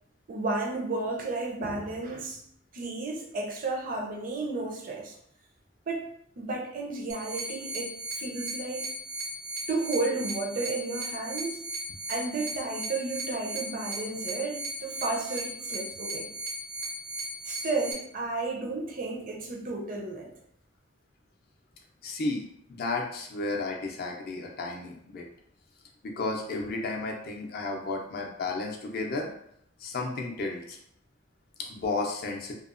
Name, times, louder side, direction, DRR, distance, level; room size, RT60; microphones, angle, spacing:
voice 1, 0.3-2.4 2.7-5.2 5.9-6.1 6.4-8.9 9.7-11.6 12.1-16.3 17.4-20.3, right 3 dB, 45° right, 2 dB, 0.4 m, -32 dB
sound 1, 7.1-17.9, right 1 dB, 90° right, 0.7 m, -37 dB
voice 2, 22.0-25.3 26.0-29.3 29.8-30.8 31.6-32.6, left 3 dB, 50° left, 1 dB, 0.4 m, -33 dB
2.8 x 2.0 x 2.4 m, 0.69 s
head